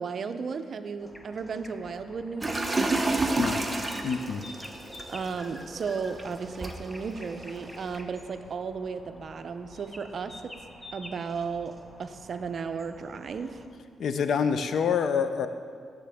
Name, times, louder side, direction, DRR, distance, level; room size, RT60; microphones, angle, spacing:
voice 1, 0.0-3.5 5.1-10.5 10.9-13.6, right 5 dB, 55° right, 9 dB, 0.5 m, -35 dB
sound 1, 1.0-13.7, left 1 dB, 15° left, 0.9 m, -49 dB
sound 2, 2.4-8.0, right 2 dB, 20° right, 0.8 m, -31 dB
voice 2, 4.0-4.4 14.0-15.5, left 6 dB, 70° left, 10 dB, 0.5 m, -26 dB
13.5 x 6.5 x 3.5 m, 2.1 s
cardioid pair, 80°, 0 cm